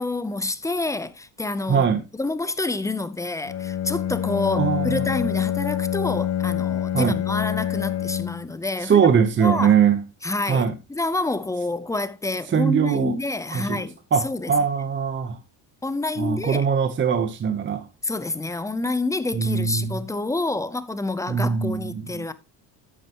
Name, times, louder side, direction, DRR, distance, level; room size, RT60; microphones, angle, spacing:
voice 1, 0.0-1.9 2.2-9.1 9.4-9.7 10.2-14.0 14.2-14.5 15.8-16.7 18.0-22.3, left 2 dB, 10° left, 0.6 m, -28 dB
voice 2, 1.7-2.0 4.5-5.0 6.9-7.1 8.8-10.0 10.5-10.7 12.5-13.1 13.5-13.8 14.1-15.4 16.2-17.9 19.3-20.0 21.3-22.2, right 7 dB, 30° right, 0.9 m, -21 dB
Bowed string instrument, 3.4-8.5, left 10 dB, 40° left, 1.6 m, -26 dB
11.0 x 8.6 x 2.9 m
cardioid pair, 130°, 41 cm